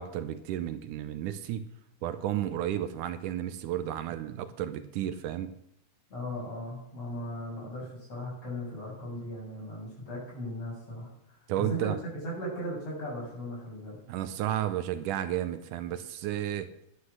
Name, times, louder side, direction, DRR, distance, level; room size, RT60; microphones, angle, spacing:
voice 1, 0.0-1.7 2.0-5.5 11.5-12.0 14.1-16.7, right 11 dB, 80° right, 11 dB, 2.2 m, -32 dB
voice 2, 6.1-11.4 11.7-11.9 12.2-14.0, equal, 50° left, -4 dB, 8.2 m, -37 dB
11.5 x 9.9 x 6.5 m, 0.80 s
omnidirectional pair, 3.7 m